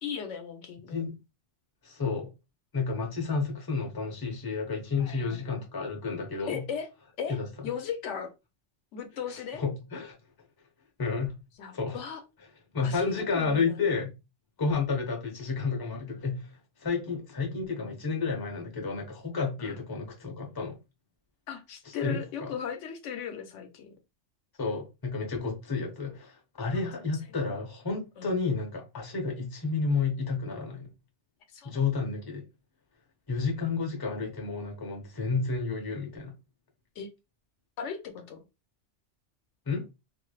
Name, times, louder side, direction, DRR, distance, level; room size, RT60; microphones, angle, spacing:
voice 1, 0.0-1.0 5.0-5.6 6.4-6.9 7.2-8.3 8.9-9.6 11.6-12.2 12.8-13.8 19.6-19.8 21.5-23.9 27.3-27.4 28.2-28.3 31.5-31.8 37.0-37.1 37.8-38.4, left 7 dB, 85° left, 1.0 m, -37 dB
voice 2, 1.8-2.3 2.7-6.6 7.3-7.5 9.6-10.2 11.0-11.4 11.7-12.0 12.7-14.2 14.6-20.8 22.0-22.5 24.6-30.9 31.6-32.4 33.3-36.3 39.7-39.9, left 4 dB, 25° left, 0.7 m, -31 dB
3.2 x 2.6 x 2.2 m
omnidirectional pair, 1.2 m